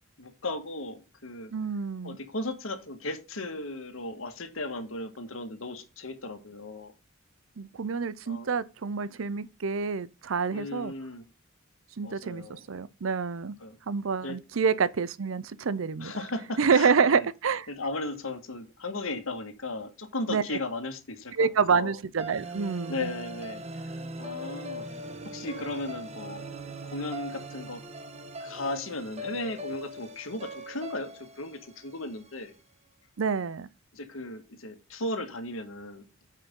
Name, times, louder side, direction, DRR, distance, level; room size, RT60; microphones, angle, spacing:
voice 1, 0.2-1.5 2.0-6.9 8.2-8.6 10.5-11.2 12.0-12.6 13.6-13.8 14.2-14.4 16.0-17.3 17.7-21.5 21.7-22.0 22.9-24.9 25.2-26.4 26.9-27.8 28.4-32.5 33.9-36.0, left 2 dB, 90° left, 1.7 m, -36 dB
voice 2, 1.5-2.2 7.6-10.9 12.0-13.6 13.9-16.1 16.6-17.7 20.3-20.4 21.4-23.1 33.2-33.7, right 5 dB, 75° right, 0.6 m, -27 dB
sound 1, 22.2-32.5, right 1 dB, 35° right, 1.3 m, -40 dB
9.2 x 5.5 x 3.7 m
head